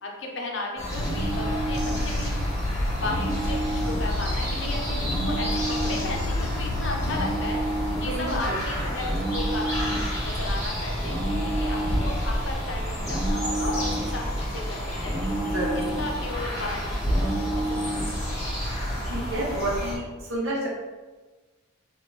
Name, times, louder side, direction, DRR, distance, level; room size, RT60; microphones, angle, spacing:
voice 1, 0.0-2.4 2.6-15.3 16.0-18.4, left 2 dB, 60° left, 0 dB, 0.7 m, -35 dB
sound 1, 0.8-19.9, equal, 15° left, 1.1 m, -29 dB
sound 2, 0.9-7.3, left 3 dB, 90° left, 0.4 m, -33 dB
sound 3, 1.0-2.1 3.0-4.1 5.0-6.1 7.0-8.1 9.0-10.2 11.0-12.2 13.0-14.2 15.0-16.2 17.0-18.2, right 1 dB, ahead, 0.3 m, -31 dB
voice 2, 8.1-9.1 15.5-15.9 19.0-20.7, right 1 dB, 75° right, -4 dB, 1.1 m, -30 dB
3.6 x 2.5 x 3.9 m, 1.3 s
head